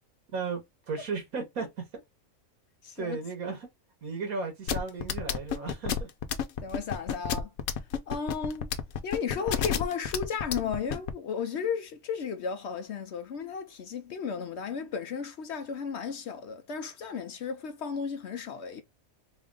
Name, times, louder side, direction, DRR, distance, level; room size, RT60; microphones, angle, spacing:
voice 1, 0.9-1.9 3.0-3.7 4.0-6.1, right 4 dB, 85° right, 1.9 m, -35 dB
voice 2, 2.8-3.2 6.6-7.5 8.1-8.7 9.0-18.8, left 6 dB, 65° left, 0.8 m, -34 dB
sound 1, 4.7-11.1, left 8 dB, 80° left, 1.1 m, -29 dB
4.0 x 2.4 x 3.6 m
omnidirectional pair, 1.5 m